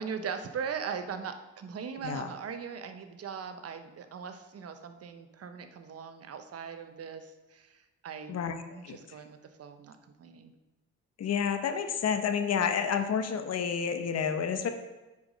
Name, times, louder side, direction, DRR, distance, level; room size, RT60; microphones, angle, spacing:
voice 1, 0.0-10.5, right 6 dB, 50° right, 8 dB, 0.9 m, -40 dB
voice 2, 11.2-14.7, left 7 dB, 55° left, 8 dB, 1.0 m, -29 dB
9.4 x 4.9 x 5.2 m, 1.1 s
cardioid pair, 90°, 30 cm